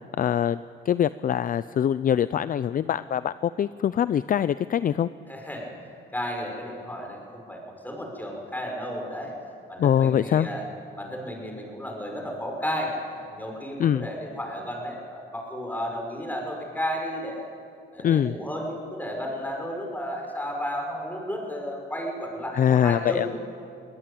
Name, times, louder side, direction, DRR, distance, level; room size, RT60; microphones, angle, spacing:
voice 1, 0.2-5.1 9.8-10.5 13.8-14.1 18.0-18.4 22.5-23.4, left 9 dB, 45° left, 15 dB, 0.5 m, -23 dB
voice 2, 5.3-5.7 6.1-9.3 9.7-10.6 11.0-17.4 17.9-23.4, equal, 10° left, 1 dB, 6.0 m, -33 dB
22.5 x 18.5 x 8.6 m, 2.5 s
cardioid pair, 90°, 20 cm